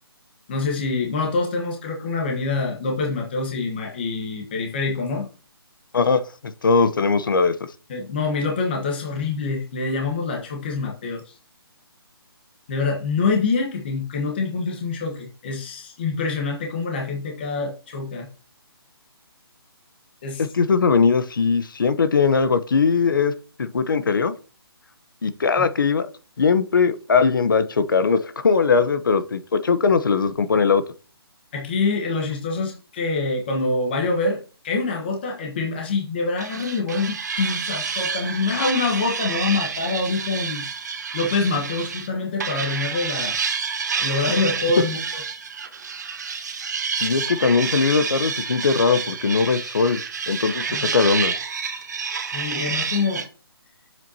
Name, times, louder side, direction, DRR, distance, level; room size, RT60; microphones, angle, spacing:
voice 1, 0.5-5.3 7.9-11.4 12.7-18.3 20.2-20.4 25.6-25.7 31.5-40.7 41.1-43.3 44.0-45.0 50.7-50.9 52.3-53.3, left 4 dB, 25° left, 0 dB, 1.3 m, -25 dB
voice 2, 6.6-7.5 20.4-23.3 23.6-24.3 25.2-26.1 26.4-30.8 47.0-50.0 50.3-51.3, left 5 dB, 55° left, 12 dB, 1.0 m, -20 dB
sound 1, 36.4-42.1 42.4-53.3, right 6 dB, 45° right, 1.2 m, -29 dB
8.9 x 7.7 x 2.8 m, 0.35 s
hypercardioid pair, 175°, 13 cm